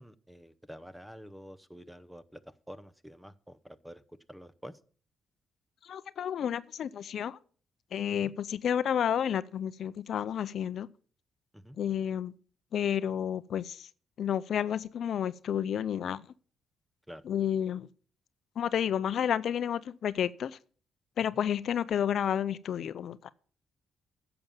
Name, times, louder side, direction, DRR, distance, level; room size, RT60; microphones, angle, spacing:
voice 1, 0.0-4.0 4.3-4.8 8.1-8.3 11.5-11.8 17.1-17.2, equal, 5° right, 0.8 m, -48 dB
voice 2, 5.8-7.4 7.9-10.9 11.8-12.3 12.7-13.9 14.2-16.2 17.3-17.9 18.6-20.6 21.2-23.3, left 9 dB, 65° left, 0.5 m, -31 dB
10.5 x 7.0 x 7.4 m
cardioid pair, 90°, 0 cm